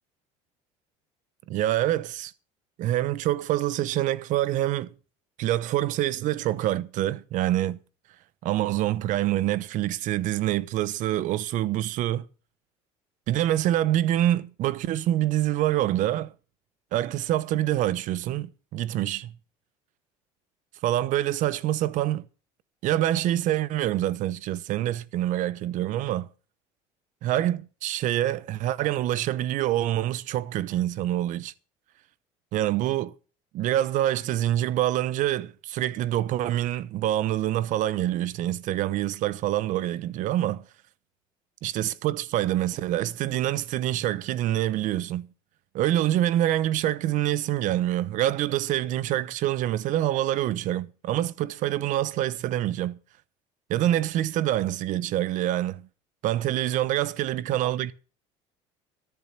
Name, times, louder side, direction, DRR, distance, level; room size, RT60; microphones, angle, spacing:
voice 1, 1.5-2.3 2.8-4.9 5.4-7.8 8.4-12.3 13.3-16.3 16.9-19.4 20.8-22.3 22.8-26.3 27.2-31.5 32.5-33.1 33.5-40.7 41.6-45.3 45.7-53.0 53.7-55.9 56.2-57.9, right 13 dB, 60° right, 0.9 m, -26 dB
13.5 x 7.2 x 7.3 m
supercardioid pair, 90°, 15 cm